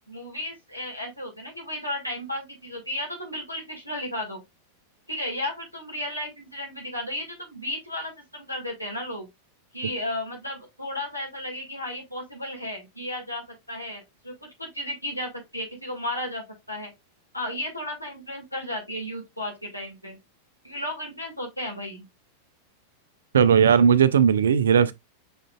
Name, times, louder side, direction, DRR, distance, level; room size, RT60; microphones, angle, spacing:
voice 1, 0.1-4.4 5.1-9.3 9.7-16.9 17.3-20.2 20.6-22.1, left 1 dB, 90° left, 1.7 m, -34 dB
voice 2, 23.3-24.9, right 7 dB, 65° right, 0.4 m, -17 dB
5.9 x 3.7 x 2.2 m
figure-of-eight pair, 90°, 0 cm